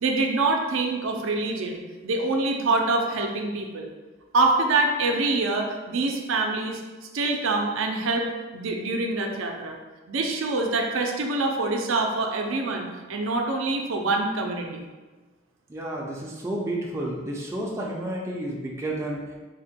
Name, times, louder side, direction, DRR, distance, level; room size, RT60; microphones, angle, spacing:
voice 1, 0.0-3.9 4.3-6.8 7.1-9.8 10.1-14.8, right 3 dB, 75° right, 2 dB, 0.5 m, -25 dB
voice 2, 15.7-19.3, right 1 dB, 15° right, -3 dB, 0.4 m, -31 dB
3.6 x 2.2 x 4.1 m, 1.3 s
head